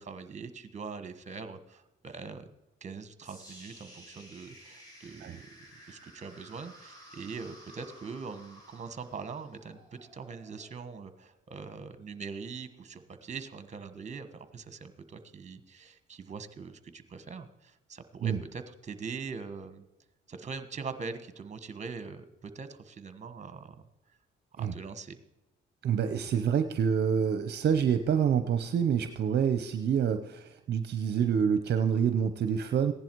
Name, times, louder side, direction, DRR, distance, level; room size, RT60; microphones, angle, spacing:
voice 1, 0.0-2.5 2.8-9.8 10.1-19.8 20.3-23.7 24.5-25.2, right 5 dB, 35° right, 11 dB, 1.3 m, -42 dB
sound 1, 3.2-11.3, equal, 20° left, 5.0 m, -54 dB
voice 2, 25.8-32.9, right 7 dB, 55° right, 9 dB, 0.8 m, -27 dB
16.0 x 10.5 x 4.6 m, 0.95 s
cardioid pair, 90°, 20 cm